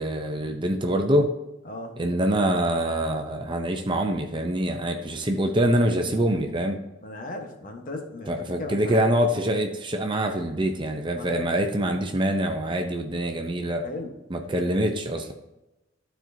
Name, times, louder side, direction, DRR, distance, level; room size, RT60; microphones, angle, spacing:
voice 1, 0.0-1.3 2.0-6.8 8.3-13.9 14.3-15.3, right 1 dB, 25° right, 4 dB, 0.6 m, -25 dB
voice 2, 1.6-2.0 7.0-9.0 11.1-11.4 13.8-14.1 14.4-14.7, left 1 dB, 45° left, 4 dB, 1.2 m, -37 dB
12.5 x 4.5 x 2.7 m, 0.97 s
head